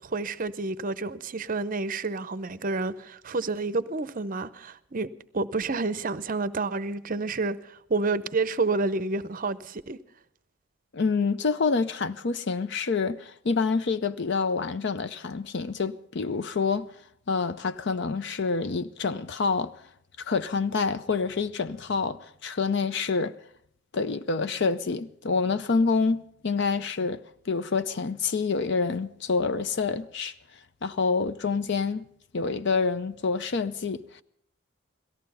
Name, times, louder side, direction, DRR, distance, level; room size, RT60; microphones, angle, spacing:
voice 1, 0.0-10.0, right 3 dB, 40° right, 0.6 m, -29 dB
voice 2, 10.9-16.9 17.3-19.8 20.2-23.3 23.9-27.2 27.5-30.3 30.8-32.1 32.3-34.2, left 4 dB, 55° left, 0.5 m, -27 dB
17.5 x 14.5 x 5.5 m
head